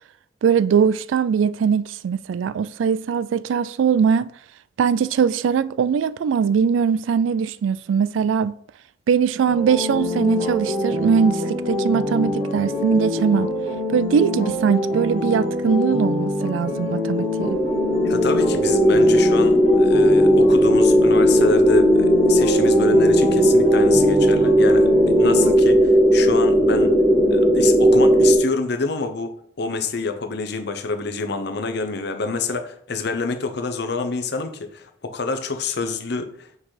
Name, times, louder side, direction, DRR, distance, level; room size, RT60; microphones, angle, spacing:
voice 1, 0.4-4.3 4.8-8.5 9.1-13.5 13.9-17.6, right 6 dB, 85° right, 0.3 m, -21 dB
sound 1, 9.5-25.5, left 2 dB, 60° right, 2.7 m, -25 dB
sound 2, 17.4-28.4, equal, 10° right, 1.3 m, -16 dB
voice 2, 18.0-26.9 27.3-36.5, left 4 dB, 60° left, 0.8 m, -27 dB
6.3 x 4.0 x 4.9 m
head